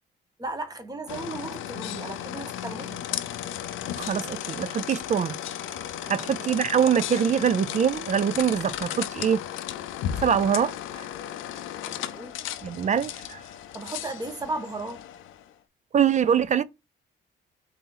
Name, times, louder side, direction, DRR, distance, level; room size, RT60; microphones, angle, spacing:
voice 1, 0.4-3.2 6.0-6.5 11.9-12.3 13.7-15.0, right 2 dB, 20° right, 1.1 m, -36 dB
sound 1, 1.1-15.5, left 11 dB, 85° left, 0.5 m, -35 dB
voice 2, 4.0-5.4 5.6-5.7 6.1-9.4 10.2-11.1 12.6-13.4 15.9-16.6, right 8 dB, 35° right, 0.4 m, -24 dB
4.1 x 2.7 x 3.8 m
cardioid pair, 90°, 20 cm